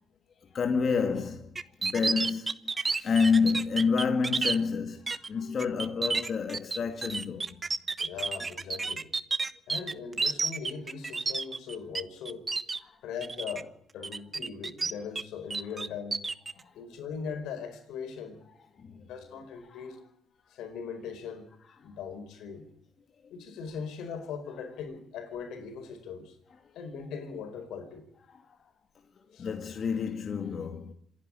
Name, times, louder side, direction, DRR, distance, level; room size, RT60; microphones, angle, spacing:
voice 1, 0.5-1.5 1.8-2.5 2.8-7.5 12.8-12.9 18.8-19.0 19.8-19.9 29.4-30.9, left 5 dB, 50° left, 2.1 m, -28 dB
sound 1, 1.6-4.6 5.1-5.3 5.6-12.0 12.3-12.8 13.2-13.6 14.0-15.2 15.5-16.5, right 4 dB, 30° right, 1.1 m, -30 dB
voice 2, 8.0-9.1 9.7-12.5 13.0-16.2 16.5-18.4 19.0-20.0 20.5-21.5 21.8-22.7 23.3-26.4 26.7-28.0 29.3-29.5, left 6 dB, 85° left, 4.8 m, -40 dB
27.0 x 11.0 x 9.9 m
cardioid pair, 90°, 0 cm